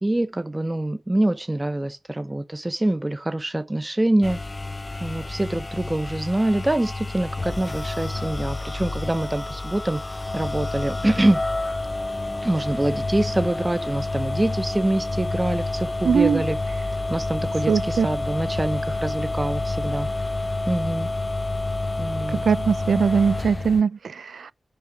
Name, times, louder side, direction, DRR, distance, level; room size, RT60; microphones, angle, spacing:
voice 1, 0.0-4.4 5.0-10.0 10.3-11.4 12.4-16.6 17.1-20.1 20.7-21.1 22.0-22.4, right 1 dB, 25° right, 0.7 m, -25 dB
sound 1, 4.2-23.8, left 2 dB, 30° left, 0.6 m, -29 dB
voice 2, 16.0-16.4 17.7-18.1 22.4-24.5, right 6 dB, 85° right, 0.4 m, -21 dB
7.8 x 6.0 x 3.4 m
cardioid pair, 60°, 0 cm